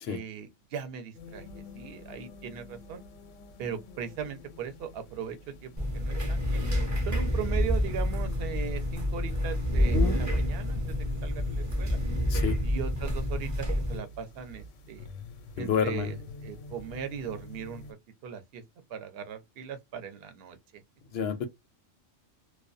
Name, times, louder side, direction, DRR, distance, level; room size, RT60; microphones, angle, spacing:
voice 1, 0.1-3.0 3.6-6.6 7.0-12.0 12.6-15.1 15.6-16.2 16.4-18.0 18.2-18.6 18.9-20.6, right 8 dB, 60° right, 0.8 m, -39 dB
sound 1, 1.1-17.9, left 3 dB, 90° left, 1.0 m, -47 dB
sound 2, 5.8-14.0, left 1 dB, 20° right, 0.6 m, -28 dB
voice 2, 9.9-10.2 12.3-12.6 15.6-16.1 21.1-21.5, left 6 dB, 65° left, 0.7 m, -29 dB
2.3 x 2.2 x 2.4 m
omnidirectional pair, 1.3 m